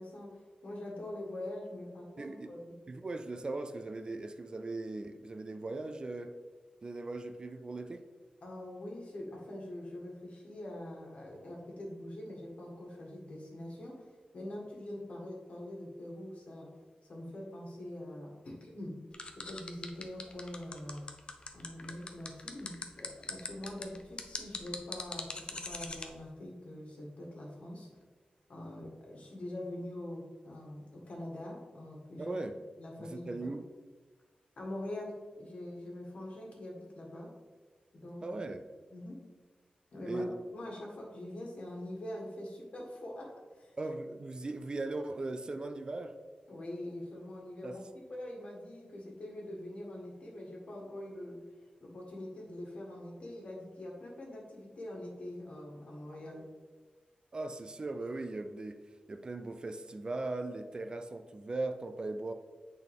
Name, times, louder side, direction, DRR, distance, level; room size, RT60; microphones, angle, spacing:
voice 1, 0.0-2.7 8.4-16.7 17.0-18.9 19.5-21.1 21.5-27.9 28.5-32.4 32.8-33.5 34.6-37.3 37.9-38.2 38.9-39.2 39.9-40.3 40.5-43.8 46.5-47.8 48.1-56.5, left 1 dB, 55° left, -1 dB, 1.6 m, -44 dB
voice 2, 2.2-2.5 2.9-6.4 6.8-8.1 32.2-32.5 33.0-33.6 38.2-38.6 40.1-40.3 43.8-46.2 47.6-47.8 57.3-62.3, right 2 dB, 35° right, 8 dB, 0.4 m, -39 dB
sound 1, 19.1-26.1, left 3 dB, 35° left, 0.5 m, -41 dB
8.7 x 4.1 x 3.5 m, 1.4 s
wide cardioid pair, 155°, 3 cm